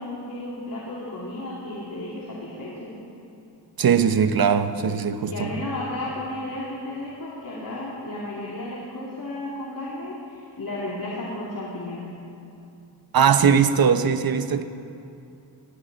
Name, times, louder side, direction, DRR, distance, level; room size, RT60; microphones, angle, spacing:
voice 1, 0.0-2.9 5.2-12.1, left 1 dB, 55° left, -6 dB, 2.6 m, -33 dB
voice 2, 3.8-5.5 13.1-14.6, right 7 dB, 60° right, 10 dB, 0.9 m, -20 dB
20.5 x 15.0 x 4.0 m, 2.6 s
cardioid pair, 85°, 40 cm